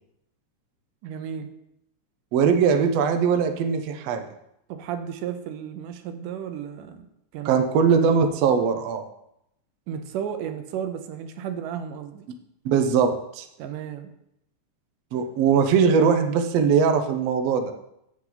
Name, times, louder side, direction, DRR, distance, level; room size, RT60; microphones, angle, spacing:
voice 1, 1.0-1.5 4.7-7.1 7.3-7.9 9.9-12.3 13.6-14.1, right 8 dB, 85° right, 8 dB, 2.3 m, -33 dB
voice 2, 2.3-4.2 7.4-9.0 12.6-13.5 15.1-17.7, right 6 dB, 70° right, 6 dB, 1.6 m, -21 dB
8.8 x 7.5 x 3.9 m, 0.80 s
omnidirectional pair, 3.6 m